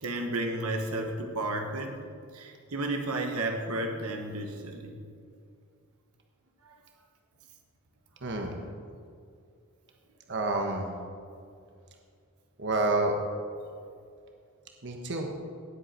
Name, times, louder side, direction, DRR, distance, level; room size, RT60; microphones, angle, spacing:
voice 1, 0.0-2.0 2.3-4.9 6.6-6.8, right 2 dB, 80° right, 3 dB, 1.3 m, -32 dB
voice 2, 8.2-8.6 10.3-11.0 12.6-13.1 14.8-15.3, right 2 dB, 55° right, 2 dB, 1.2 m, -28 dB
18.0 x 8.0 x 4.4 m, 2.3 s
head